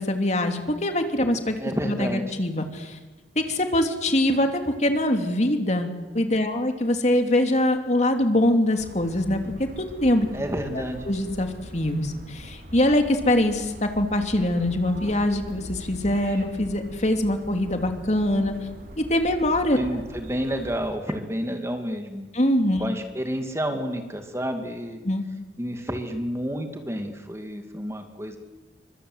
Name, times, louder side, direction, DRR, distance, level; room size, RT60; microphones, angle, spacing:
voice 1, 0.0-1.6 1.8-3.0 3.3-10.3 10.7-18.5 19.0-19.8 22.3-22.8 25.0-25.2, left 1 dB, 40° left, 5 dB, 2.9 m, -23 dB
voice 2, 1.6-2.3 10.3-11.1 19.7-22.3 22.7-25.0 25.6-28.4, equal, 15° right, 5 dB, 2.5 m, -30 dB
sound 1, 8.8-20.9, equal, 50° right, 4.4 m, -42 dB
29.5 x 24.5 x 8.1 m, 1.2 s
head